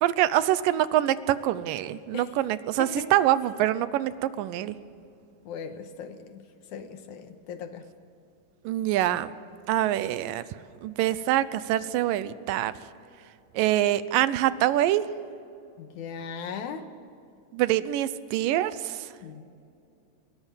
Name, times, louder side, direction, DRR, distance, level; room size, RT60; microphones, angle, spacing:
voice 1, 0.0-4.8 8.7-9.3 9.7-10.4 10.8-12.7 13.5-15.1 17.5-19.1, right 13 dB, 85° right, 15 dB, 2.4 m, -25 dB
voice 2, 2.8-3.1 5.4-7.9 15.8-16.9 19.2-19.4, left 6 dB, 70° left, 8 dB, 2.4 m, -38 dB
21.5 x 18.0 x 7.4 m, 2.6 s
omnidirectional pair, 3.9 m